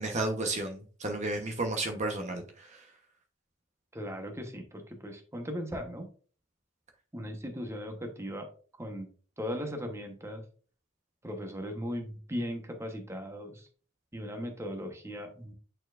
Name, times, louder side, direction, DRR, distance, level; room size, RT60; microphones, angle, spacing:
voice 1, 0.0-2.8, right 2 dB, 35° right, 4 dB, 1.0 m, -32 dB
voice 2, 3.9-6.1 7.1-8.5 8.8-9.1 9.4-10.4 11.2-13.7 14.1-15.5, equal, 15° right, 4 dB, 1.0 m, -38 dB
8.9 x 4.4 x 2.5 m, 0.40 s
head